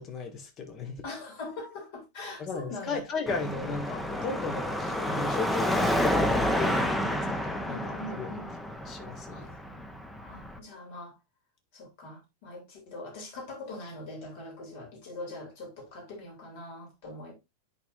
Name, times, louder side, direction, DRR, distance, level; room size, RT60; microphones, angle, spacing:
voice 1, 0.0-1.0 2.4-8.3 8.9-9.6, left 4 dB, 30° left, 1.5 m, -36 dB
voice 2, 1.0-3.0 7.7-8.5 9.2-9.5 10.2-11.2 11.7-17.3, left 2 dB, 50° left, 3.0 m, -42 dB
Car passing by / Traffic noise roadway noise / Engine, 3.3-10.6, equal, 5° left, 0.9 m, -29 dB
10.0 x 4.7 x 2.6 m
figure-of-eight pair, 90°, 0 cm